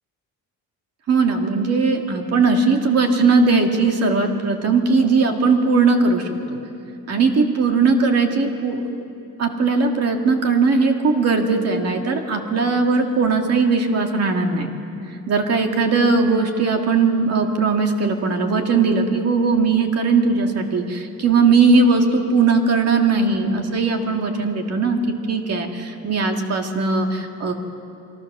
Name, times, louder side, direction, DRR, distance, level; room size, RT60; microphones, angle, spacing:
voice 1, 1.1-6.3 7.1-8.9 9.4-14.7 15.3-27.5, right 4 dB, 45° right, 4 dB, 2.1 m, -19 dB
28.5 x 22.5 x 6.7 m, 2.8 s
cardioid pair, 170°, 36 cm